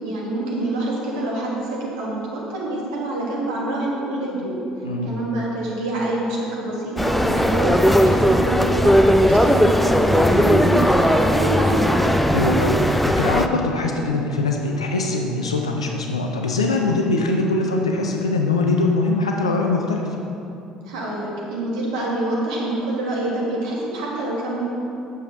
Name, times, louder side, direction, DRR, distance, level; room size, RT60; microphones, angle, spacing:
voice 1, 0.0-4.5 5.0-12.1 20.8-24.6, right 2 dB, 75° right, -4 dB, 1.4 m, -26 dB
voice 2, 4.8-5.1 12.3-20.1, left 2 dB, 85° left, 2 dB, 0.5 m, -22 dB
sound 1, 7.0-13.5, equal, 5° left, 0.4 m, -17 dB
7.5 x 6.9 x 3.5 m, 2.8 s
figure-of-eight pair, 55°, 3 cm